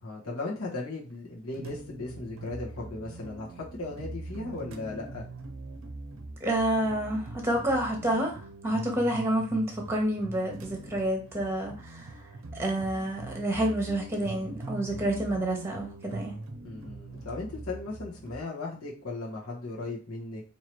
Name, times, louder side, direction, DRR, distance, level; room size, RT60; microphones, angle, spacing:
voice 1, 0.0-5.2 16.6-20.4, left 2 dB, 85° left, -4 dB, 1.1 m, -37 dB
sound 1, 1.5-18.4, right 2 dB, 65° right, 0.6 m, -42 dB
voice 2, 6.4-12.1 12.5-16.4, right 1 dB, 10° right, 2 dB, 1.0 m, -29 dB
4.5 x 2.9 x 3.0 m, 0.35 s
head